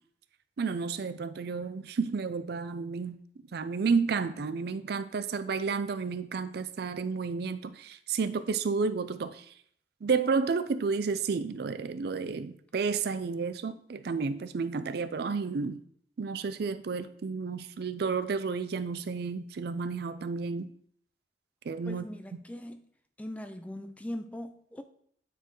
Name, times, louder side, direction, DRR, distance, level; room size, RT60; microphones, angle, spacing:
voice 1, 0.6-3.2 3.5-9.5 10.0-15.8 16.2-20.7 21.7-22.1, right 5 dB, 60° right, 0.4 m, -31 dB
voice 2, 21.9-22.8 23.2-24.8, left 1 dB, 10° left, 0.4 m, -40 dB
9.1 x 4.5 x 3.1 m
head